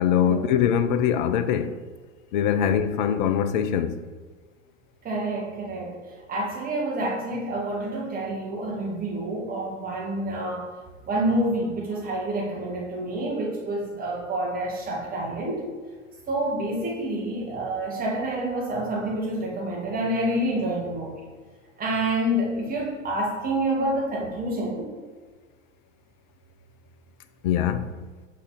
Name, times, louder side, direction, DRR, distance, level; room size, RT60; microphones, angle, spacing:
voice 1, 0.0-1.8 2.3-4.0 27.4-28.0, left 9 dB, 40° left, 0.5 m, -23 dB
voice 2, 5.0-6.0 6.3-10.7 11.1-15.7 16.3-21.3 21.8-24.9, right 1 dB, 20° right, 1.8 m, -28 dB
6.1 x 5.6 x 4.1 m
figure-of-eight pair, 85°, 38 cm